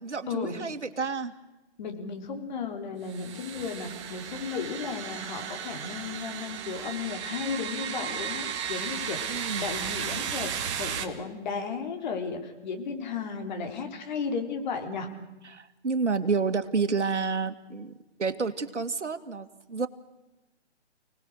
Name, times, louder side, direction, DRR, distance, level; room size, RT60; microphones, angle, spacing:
voice 1, 0.0-1.3 9.3-9.7 15.5-17.9 18.2-19.9, right 4 dB, 80° right, 8 dB, 2.3 m, -29 dB
voice 2, 1.8-10.5 10.8-15.1, left 5 dB, 40° left, 5 dB, 3.7 m, -34 dB
sound 1, 3.1-11.0, right 8 dB, 25° right, 1.8 m, -35 dB
29.5 x 19.5 x 6.6 m, 1.0 s
hypercardioid pair, 150°, 35 cm